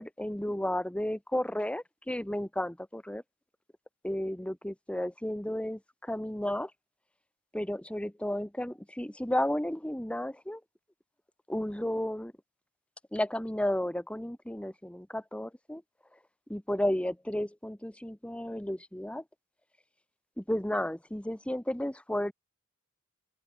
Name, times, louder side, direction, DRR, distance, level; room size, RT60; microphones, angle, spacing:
voice 1, 0.0-3.2 4.0-6.7 7.5-10.6 11.5-12.3 13.1-15.8 16.5-19.2 20.4-22.3, left 1 dB, 5° left, 0.9 m, -33 dB
open air
head